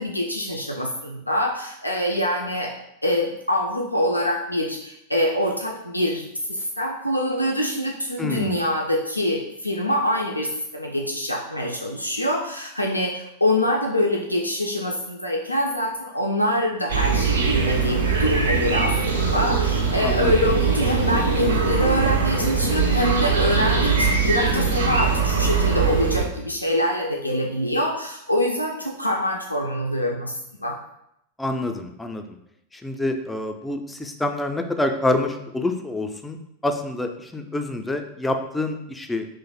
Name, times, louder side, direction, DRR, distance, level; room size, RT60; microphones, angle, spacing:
voice 1, 0.0-2.7 3.0-30.8, left 1 dB, 85° left, 0 dB, 0.3 m, -25 dB
voice 2, 8.2-8.6 20.0-20.6 31.4-32.4 32.7-36.4 36.6-39.3, left 2 dB, 10° left, 5 dB, 0.3 m, -27 dB
sound 1, 16.9-26.3, right 5 dB, 70° right, 0.5 m, -21 dB
3.0 x 2.0 x 4.0 m, 0.79 s
figure-of-eight pair, 90°, 0 cm